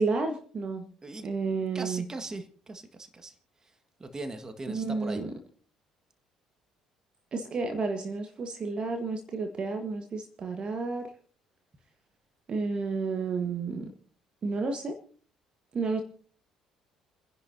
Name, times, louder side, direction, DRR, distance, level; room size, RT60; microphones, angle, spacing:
voice 1, 0.0-0.9 1.2-2.1 4.7-5.3 7.3-11.1 12.5-13.9 14.4-15.0 15.7-16.0, right 4 dB, 40° right, 6 dB, 1.4 m, -31 dB
voice 2, 1.5-3.3 4.0-5.2, right 2 dB, 25° right, 7 dB, 1.7 m, -40 dB
30.0 x 10.5 x 2.8 m, 0.43 s
figure-of-eight pair, 50°, 3 cm